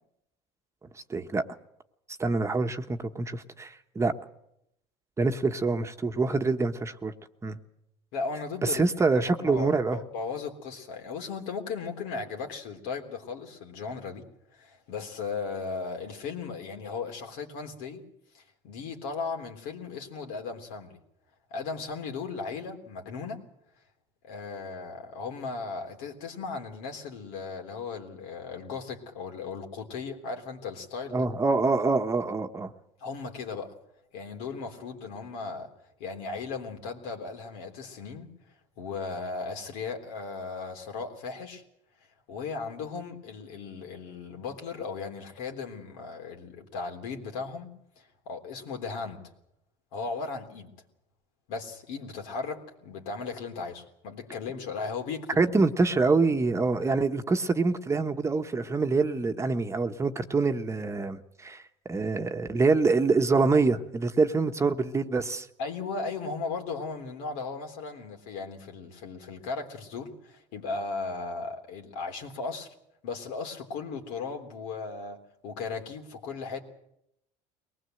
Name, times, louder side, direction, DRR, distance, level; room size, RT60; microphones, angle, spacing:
voice 1, 1.1-1.4 2.2-4.1 5.2-7.1 7.4-7.6 8.7-10.0 31.1-32.7 55.4-61.6 61.9-65.5, right 3 dB, 20° right, 6 dB, 1.2 m, -25 dB
voice 2, 8.1-8.8 9.1-14.3 14.5-18.0 18.3-21.0 21.5-23.4 24.2-31.3 33.0-33.8 34.1-35.7 36.0-41.6 42.3-49.2 49.9-50.7 51.5-55.4 65.6-72.7 73.0-76.6, left 4 dB, 80° left, 3 dB, 3.5 m, -36 dB
22.5 x 19.5 x 7.9 m, 0.80 s
supercardioid pair, 105°, 15 cm